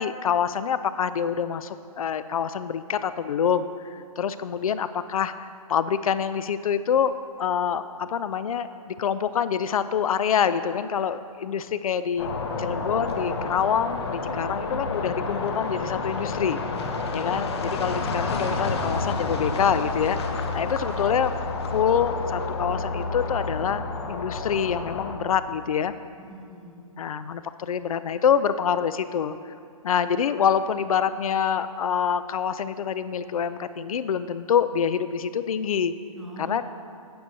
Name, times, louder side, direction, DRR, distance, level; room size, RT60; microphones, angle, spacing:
voice 1, 0.0-12.3 12.6-16.6 17.1-20.2 20.5-21.3 21.7-25.9 27.0-29.5 29.8-35.9 36.4-36.6, left 8 dB, 70° left, 13 dB, 0.4 m, -26 dB
sound 1, 12.2-25.2, left 3 dB, 45° left, 0.9 m, -29 dB
voice 2, 16.7-17.4 26.2-26.9 36.2-36.6, right 1 dB, ahead, -4 dB, 0.6 m, -43 dB
17.0 x 6.3 x 2.7 m, 2.4 s
hypercardioid pair, 150°, 19 cm